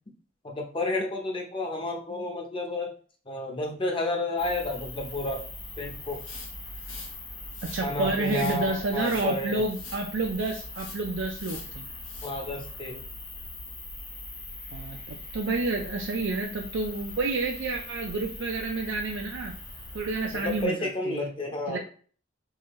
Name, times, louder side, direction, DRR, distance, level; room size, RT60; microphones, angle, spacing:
voice 1, 0.4-2.9 3.3-5.4 5.8-6.2 7.8-9.6 12.2-13.0 20.4-21.8, left 2 dB, 25° left, 1 dB, 0.7 m, -31 dB
sound 1, 4.4-20.7, left 2 dB, 55° left, 1.6 m, -41 dB
sound 2, 6.1-7.1 7.5-7.8 8.2-8.6 8.9-9.3 9.7-10.0 10.4-11.0 11.3-11.7 12.0-12.3, left 4 dB, 90° left, 1.0 m, -44 dB
voice 2, 7.6-11.9 14.7-19.6 19.9-21.3 21.7-21.8, right 3 dB, 65° right, 1 dB, 0.5 m, -30 dB
3.7 x 2.6 x 3.1 m, 0.42 s
head